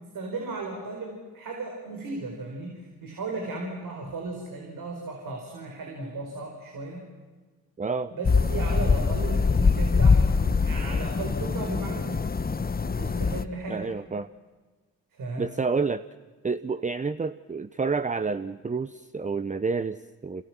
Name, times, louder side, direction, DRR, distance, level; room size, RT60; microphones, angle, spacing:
voice 1, 0.1-7.0 8.1-10.2 10.6-12.3 12.9-13.9 15.1-15.5, right 3 dB, 65° right, 2 dB, 5.1 m, -35 dB
voice 2, 7.8-8.1 13.7-14.3 15.4-16.0 16.4-20.4, right 4 dB, 20° right, 13 dB, 0.8 m, -29 dB
sound 1, 8.2-13.4, left 4 dB, 25° left, 1.1 m, -23 dB
27.5 x 27.5 x 7.5 m, 1.3 s
supercardioid pair, 55°, 36 cm